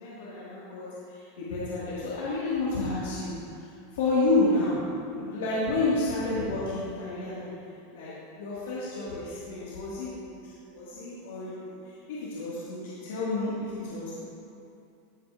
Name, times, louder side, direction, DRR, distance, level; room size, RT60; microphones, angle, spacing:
voice 1, 0.0-7.5 7.9-14.1, left 2 dB, 80° left, -9 dB, 1.8 m, -30 dB
14.5 x 5.0 x 2.5 m, 2.6 s
supercardioid pair, 125°, 0 cm